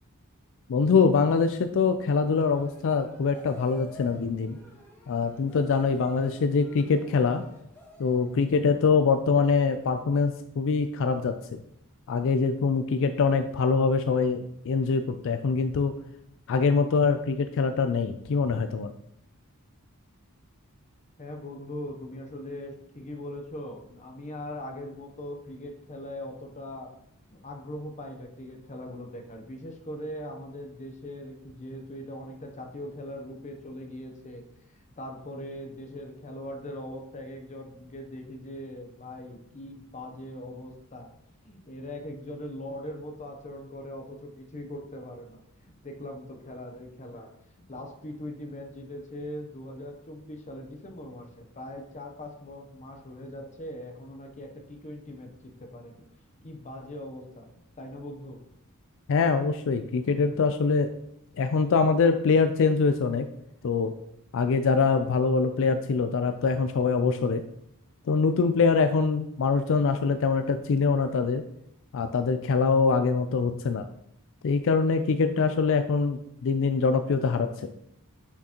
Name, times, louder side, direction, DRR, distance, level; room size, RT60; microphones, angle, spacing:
voice 1, 0.7-4.6 5.1-7.4 8.0-11.6 12.1-15.9 16.5-18.9 59.1-60.9 61.4-63.3 63.6-63.9 64.3-67.4 68.1-71.4 71.9-73.8 74.4-77.7, left 4 dB, 60° left, 8 dB, 0.4 m, -24 dB
sound 1, 2.2-8.4, equal, 10° left, 2.0 m, -49 dB
voice 2, 21.2-26.9 27.3-34.4 34.7-41.1 41.4-47.3 47.7-56.1 56.4-57.5 57.8-58.4, left 1 dB, 35° left, 3 dB, 0.8 m, -40 dB
6.3 x 5.9 x 2.9 m, 0.75 s
head